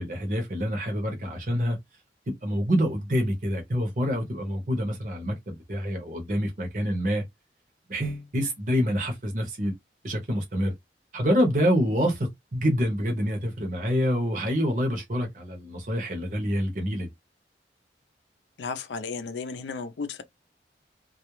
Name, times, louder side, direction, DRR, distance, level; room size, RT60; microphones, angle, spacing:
voice 1, 0.0-1.8 2.3-7.2 7.9-9.7 10.0-10.7 11.1-17.1, equal, 45° right, 0.8 m, -27 dB
voice 2, 18.6-20.2, left 4 dB, 80° left, 0.4 m, -34 dB
2.3 x 2.0 x 3.0 m
head